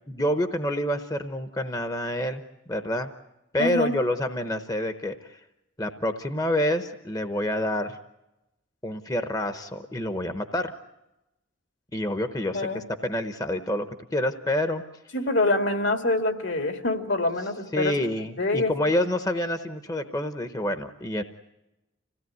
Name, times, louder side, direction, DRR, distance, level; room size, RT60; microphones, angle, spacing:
voice 1, 0.1-2.4 2.7-3.1 3.5-5.4 5.8-8.0 8.8-10.7 11.9-14.8 17.7-21.2, left 1 dB, 20° left, 9 dB, 0.9 m, -28 dB
voice 2, 3.6-3.9 12.5-12.8 15.1-17.9 18.4-18.7, left 2 dB, 70° left, 6 dB, 2.5 m, -25 dB
26.5 x 17.0 x 9.4 m, 0.97 s
head